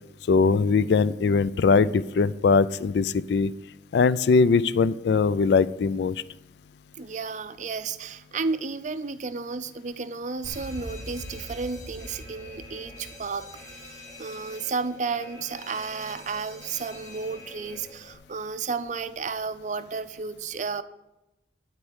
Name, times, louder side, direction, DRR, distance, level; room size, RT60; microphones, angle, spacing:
voice 1, 0.3-3.5 3.9-6.2, left 4 dB, 65° left, 17 dB, 0.3 m, -21 dB
voice 2, 7.0-13.5 13.8-20.8, right 4 dB, 45° right, 12 dB, 0.5 m, -32 dB
Alarm, 10.4-18.1, left 1 dB, 20° left, 1.8 m, -43 dB
12.0 x 4.5 x 8.0 m, 0.96 s
head